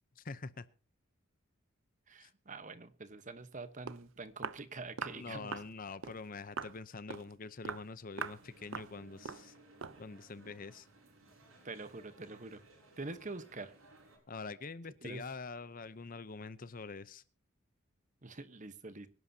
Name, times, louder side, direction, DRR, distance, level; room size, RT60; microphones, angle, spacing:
voice 1, 0.2-0.7 2.2-2.3 5.1-9.5 10.0-10.9 14.3-17.2, left 4 dB, 40° left, 0.7 m, -45 dB
voice 2, 2.1-5.5 11.6-12.6 13.0-13.7 15.0-15.2 18.2-19.1, right 3 dB, 35° right, 1.1 m, -45 dB
Walk footsteps, 3.5-3.6 3.9-4.0 4.4-4.6 5.0-5.2 5.5-5.7 6.0-6.2 6.6-6.8 7.1-7.3 7.6-7.9 8.2-8.4 8.7-8.9 9.2-9.5 9.8-10.0, right 6 dB, 65° right, 0.6 m, -41 dB
sound 1, 8.1-14.2, right 2 dB, 80° right, 6.6 m, -60 dB
24.5 x 11.0 x 2.8 m
head